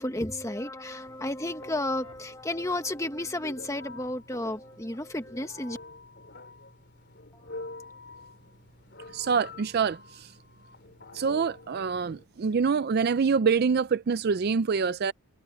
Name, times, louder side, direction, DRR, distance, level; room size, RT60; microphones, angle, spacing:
voice 1, 0.0-5.8 7.5-7.9, left 1 dB, 15° left, 1.4 m, -32 dB
Telephone, 1.1-12.2, left 2 dB, 50° left, 3.6 m, -47 dB
voice 2, 9.1-10.3 11.1-15.1, right 5 dB, 45° right, 0.4 m, -26 dB
head